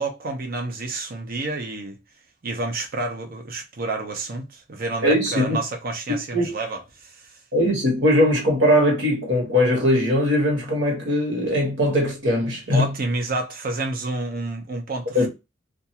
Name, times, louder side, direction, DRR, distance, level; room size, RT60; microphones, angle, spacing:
voice 1, 0.0-2.0 2.4-7.3 12.7-15.3, right 2 dB, 50° right, 0.7 m, -29 dB
voice 2, 5.0-5.6 6.1-6.5 7.5-12.9 15.1-15.3, left 1 dB, 70° right, 1.3 m, -20 dB
2.5 x 2.3 x 2.8 m
head